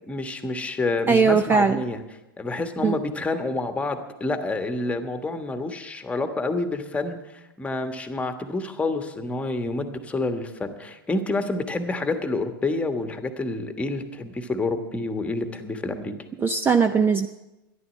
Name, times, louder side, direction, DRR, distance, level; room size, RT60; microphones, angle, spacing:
voice 1, 0.0-2.0 2.4-7.2 7.6-16.1, left 2 dB, 10° left, 7 dB, 1.4 m, -28 dB
voice 2, 1.1-1.8 2.8-3.0 16.4-17.3, right 5 dB, 15° right, 9 dB, 0.6 m, -19 dB
12.5 x 11.0 x 7.4 m, 0.99 s
hypercardioid pair, 110°, 12 cm